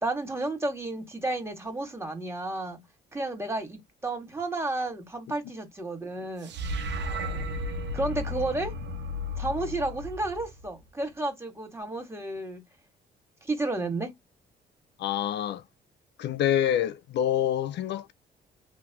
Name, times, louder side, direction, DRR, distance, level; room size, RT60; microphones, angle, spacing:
voice 1, 0.0-2.8 3.1-6.5 7.9-8.7 9.4-12.6 13.4-14.1, right 2 dB, 15° right, 2.2 m, -32 dB
sound 1, 6.4-10.8, left 1 dB, 75° right, 1.2 m, -34 dB
voice 2, 15.0-15.6 16.2-18.1, left 10 dB, 70° left, 0.5 m, -26 dB
3.4 x 2.9 x 2.9 m
cardioid pair, 90°, 18 cm